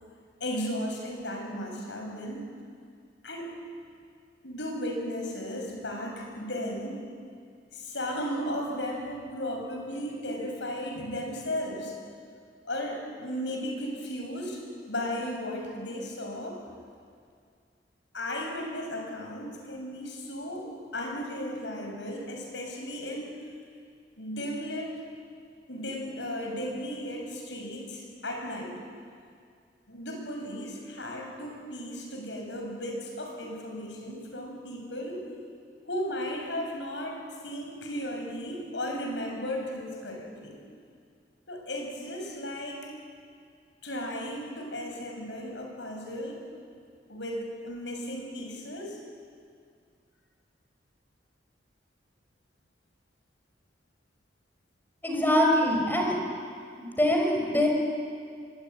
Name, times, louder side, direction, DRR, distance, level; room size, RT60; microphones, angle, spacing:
voice 1, 0.4-2.5 3.2-3.5 4.4-7.0 7.7-11.9 12.6-14.6 14.9-16.6 18.1-23.3 24.2-24.9 25.7-28.8 29.9-35.2 35.9-37.2 37.4-40.6 41.5-42.9 43.8-46.4 47.1-49.0, equal, 80° left, 1 dB, 6.6 m, -35 dB
voice 2, 55.0-56.2 56.8-57.7, left 1 dB, 10° left, 1 dB, 5.0 m, -24 dB
23.5 x 22.5 x 9.3 m, 2.2 s
head